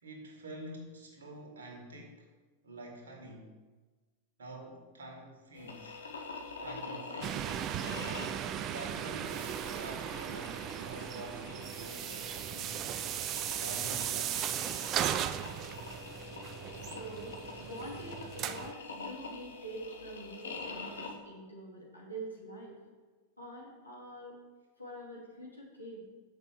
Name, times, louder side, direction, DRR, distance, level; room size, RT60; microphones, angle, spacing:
voice 1, 0.0-2.3 2.6-3.6 4.4-6.0 6.6-7.5 8.7-13.0 13.5-14.9, right 1 dB, 65° right, 1 dB, 1.9 m, -47 dB
sound 1, 5.5-21.1, left 4 dB, 65° left, 1.3 m, -46 dB
sound 2, 7.2-18.7, right 10 dB, 35° right, 0.4 m, -37 dB
voice 2, 16.8-22.8 23.4-24.4 24.8-26.0, right 1 dB, 85° left, -4 dB, 2.8 m, -45 dB
6.6 x 6.1 x 7.2 m, 1.3 s
figure-of-eight pair, 90°, 0 cm